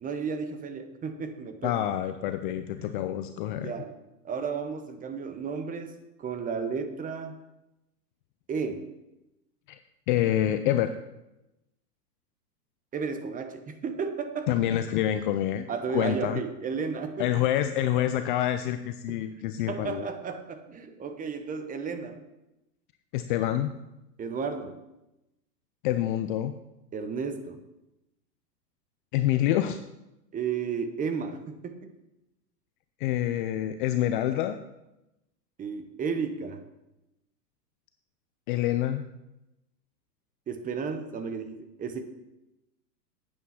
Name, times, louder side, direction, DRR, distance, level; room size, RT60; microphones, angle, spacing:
voice 1, 0.0-1.8 2.3-3.1 3.5-3.9 4.2-5.9 6.2-7.4 8.5-8.9 12.9-14.5 15.7-17.3 19.1-19.2 19.7-22.2 24.2-24.7 26.9-27.6 30.3-31.9 35.6-36.6 40.5-42.0, right 5 dB, 15° right, 8 dB, 0.9 m, -33 dB
voice 2, 1.6-3.7 9.7-9.8 10.1-10.9 14.5-15.7 15.9-16.4 17.2-20.1 23.1-23.7 25.8-26.5 29.1-29.8 33.0-34.6 38.5-39.0, left 12 dB, 35° left, 9 dB, 0.4 m, -27 dB
9.0 x 8.6 x 5.7 m, 0.93 s
hypercardioid pair, 120°, 49 cm